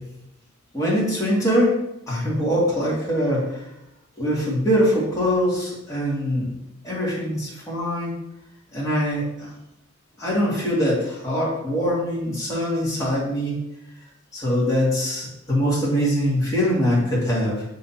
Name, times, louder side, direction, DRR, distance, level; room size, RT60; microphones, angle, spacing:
voice 1, 0.7-1.7 2.1-3.6 4.2-6.5 6.8-8.2 8.7-9.5 10.2-13.5 14.3-17.6, equal, 15° left, -7 dB, 2.2 m, -23 dB
6.4 x 5.8 x 2.9 m, 0.88 s
head